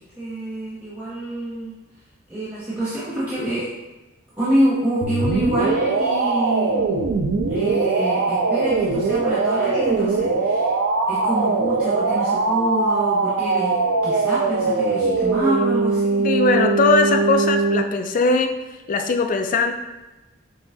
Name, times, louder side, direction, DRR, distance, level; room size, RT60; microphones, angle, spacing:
voice 1, 0.0-1.7 2.3-3.7 4.4-7.0 7.5-10.7 11.1-16.2, right 1 dB, 10° right, -10 dB, 0.8 m, -26 dB
sound 1, 5.0-17.8, right 3 dB, 65° right, 0.4 m, -21 dB
voice 2, 16.2-18.6 18.9-19.7, left 3 dB, 40° left, 6 dB, 0.3 m, -20 dB
5.9 x 2.7 x 2.6 m, 1.1 s
head